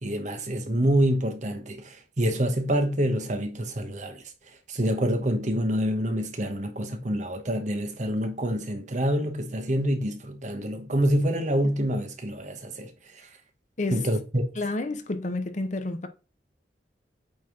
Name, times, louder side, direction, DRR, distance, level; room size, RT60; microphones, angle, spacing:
voice 1, 0.0-4.2 4.7-12.9 13.9-14.5, equal, 40° right, 1.0 m, -26 dB
voice 2, 14.6-16.1, left 2 dB, 45° left, 0.8 m, -30 dB
8.6 x 3.0 x 3.6 m
head